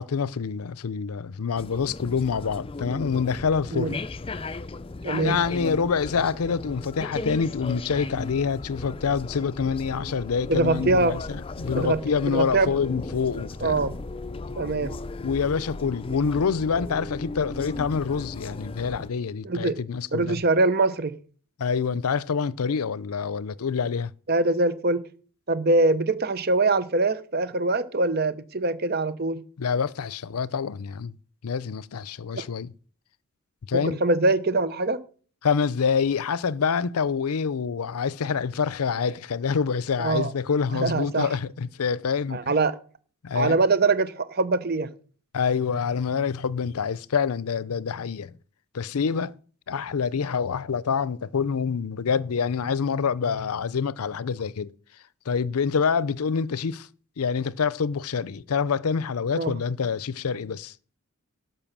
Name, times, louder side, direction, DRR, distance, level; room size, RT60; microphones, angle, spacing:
voice 1, 0.0-4.0 5.1-13.8 15.2-20.4 21.6-24.1 29.6-31.1 31.4-32.7 33.7-34.0 35.4-42.5 43.2-43.6 45.3-48.3 48.7-49.3 49.7-54.7 55.3-56.9 57.2-60.7, left 6 dB, 80° left, 0.5 m, -26 dB
sound 1, 1.6-19.1, left 3 dB, 25° left, 0.4 m, -36 dB
voice 2, 5.0-5.4 10.5-11.2 11.7-12.0 12.3-12.7 13.6-14.0 14.6-14.9 19.4-19.8 20.1-21.2 24.3-25.0 25.5-29.4 32.3-32.4 33.7-35.0 40.0-40.3 40.7-41.3 42.3-42.8 43.3-44.9 59.3-59.5, right 3 dB, 45° right, 0.9 m, -23 dB
12.0 x 5.5 x 7.3 m
head